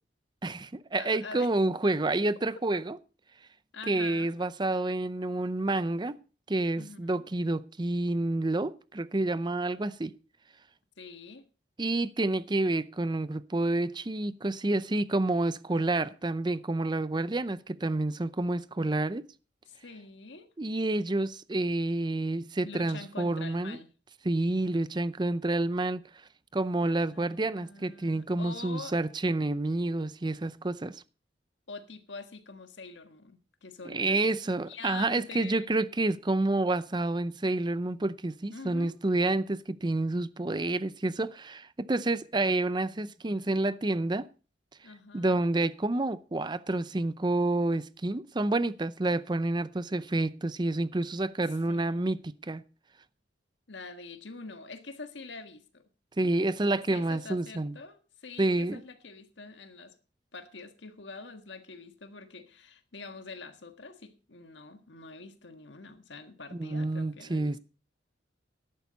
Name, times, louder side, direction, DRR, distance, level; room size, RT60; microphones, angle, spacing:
voice 1, 0.4-3.0 3.9-6.2 6.5-10.1 11.8-19.3 20.6-23.8 24.2-26.0 26.5-31.0 33.8-44.3 45.1-52.6 56.2-57.7 58.4-58.8 66.5-67.6, right 2 dB, 25° right, 0.6 m, -29 dB
voice 2, 1.0-1.5 2.7-2.8 3.7-4.3 6.8-7.3 11.0-11.5 19.7-20.5 22.6-23.9 26.8-28.9 31.7-34.3 34.6-35.7 38.5-39.0 44.8-45.6 51.5-52.1 53.7-55.8 56.9-59.9 60.3-67.6, left 4 dB, 80° left, 1.5 m, -45 dB
13.0 x 11.5 x 4.0 m
head